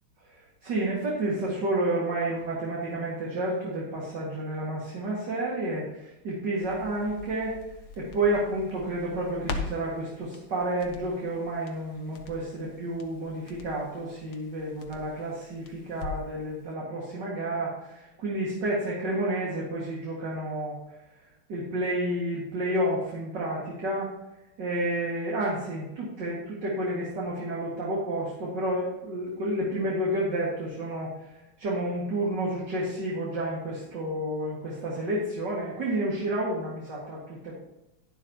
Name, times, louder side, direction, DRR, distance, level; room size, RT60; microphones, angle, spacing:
voice 1, 0.6-7.5 8.0-20.8 21.5-24.1 24.6-31.1 31.6-37.6, right 1 dB, 55° right, -5 dB, 2.6 m, -30 dB
Crackle, 6.6-16.4 16.7-16.8, left 4 dB, 80° left, 1.9 m, -42 dB
11.5 x 10.5 x 2.9 m, 0.96 s
omnidirectional pair, 2.3 m